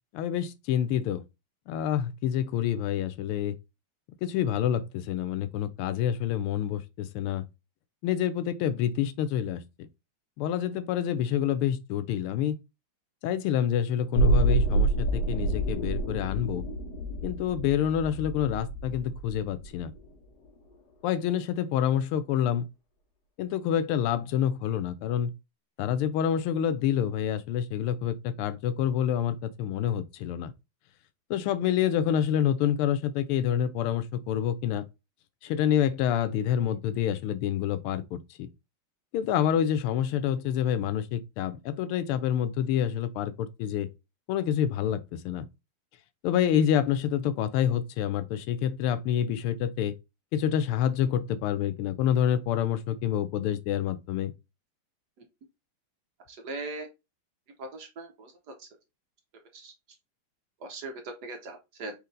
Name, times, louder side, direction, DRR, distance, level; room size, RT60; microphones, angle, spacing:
voice 1, 0.1-1.2 1.7-3.6 4.2-7.4 8.0-9.6 10.4-12.6 13.2-16.6 17.2-19.9 21.0-22.7 23.4-25.3 25.8-30.5 31.3-34.8 35.4-38.5 39.1-43.9 44.3-45.4 46.2-49.9 50.3-54.3, left 9 dB, 90° left, 1.5 m, -27 dB
sound 1, 14.1-20.1 20.4-20.5, right 2 dB, 55° left, 1.7 m, -28 dB
voice 2, 56.3-56.9 57.6-58.7 59.5-59.7 60.6-61.9, right 2 dB, 60° right, 1.2 m, -40 dB
4.4 x 3.2 x 3.7 m
omnidirectional pair, 2.3 m